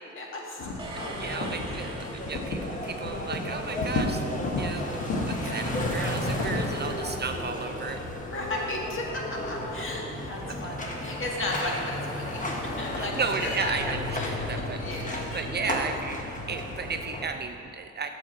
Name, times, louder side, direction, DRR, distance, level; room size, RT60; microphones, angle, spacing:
voice 1, 0.1-0.7 0.9-1.9 4.7-4.8 5.3-5.6 8.1-13.7 14.1-14.3 14.8-15.2, left 2 dB, 45° left, -1 dB, 1.7 m, -35 dB
sound 1, 0.6-1.0 1.4-1.8 2.3-2.7 3.0-3.4 3.7-4.7 5.0-6.8, left 3 dB, 60° left, 1.3 m, -31 dB
sound 2, 0.8-3.0, right 2 dB, 15° right, 1.5 m, -42 dB
sound 3, 0.9-17.2, left 1 dB, 25° left, 1.1 m, -34 dB
voice 2, 1.2-4.2 4.6-8.0 10.5-10.6 13.0-14.8 15.1-18.1, right 5 dB, 35° right, 6 dB, 0.4 m, -34 dB
7.8 x 7.1 x 4.3 m, 2.5 s
cardioid pair, 90°, 30 cm